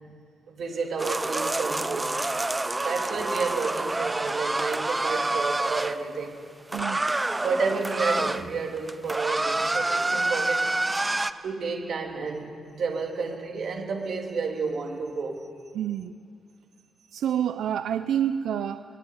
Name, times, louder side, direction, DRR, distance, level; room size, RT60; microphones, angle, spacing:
voice 1, 0.5-2.1 2.8-6.4 7.4-10.7 11.4-15.5, right 4 dB, 50° right, 1 dB, 2.9 m, -30 dB
sound 1, 1.0-6.0 6.7-8.4 8.8-11.3, right 2 dB, 10° right, 0.6 m, -27 dB
voice 2, 6.7-7.1 15.7-16.2 17.1-18.8, right 9 dB, 85° right, 10 dB, 0.6 m, -28 dB
22.5 x 18.0 x 9.7 m, 2.3 s
wide cardioid pair, 170°, 0 cm